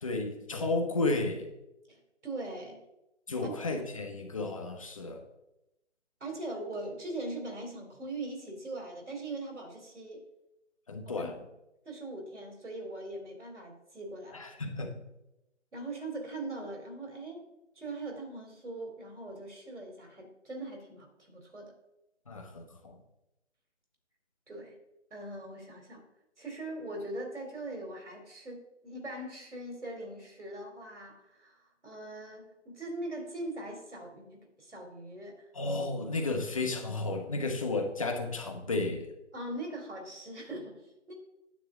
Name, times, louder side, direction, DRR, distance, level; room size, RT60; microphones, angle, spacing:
voice 1, 0.0-1.5 3.3-5.2 10.9-11.4 14.3-15.0 22.3-22.9 35.5-39.1, left 2 dB, 30° left, 4 dB, 1.1 m, -33 dB
voice 2, 1.9-2.8 3.4-3.5 6.2-10.2 11.2-11.3 11.9-14.4 15.7-17.5 17.8-21.7 24.5-24.8 25.1-26.0 26.4-35.5 39.3-41.1, right 2 dB, 70° right, 1 dB, 3.5 m, -41 dB
9.5 x 7.8 x 3.7 m, 0.91 s
figure-of-eight pair, 155°, 36 cm